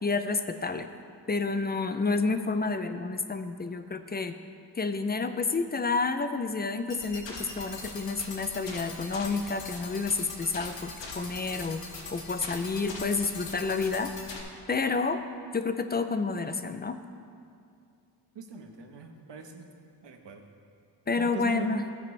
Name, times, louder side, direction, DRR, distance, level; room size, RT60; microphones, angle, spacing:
voice 1, 0.0-0.9 1.3-4.3 4.8-11.8 12.1-14.1 14.7-15.2 15.5-17.0 21.1-21.8, left 4 dB, 25° left, 9 dB, 0.4 m, -29 dB
sound 1, 6.9-14.4, left 3 dB, 85° left, 1.6 m, -41 dB
voice 2, 18.3-19.7 20.0-20.4 21.2-21.7, right 4 dB, 75° right, 4 dB, 1.1 m, -40 dB
17.0 x 9.6 x 3.2 m, 2.4 s
wide cardioid pair, 165°, 43 cm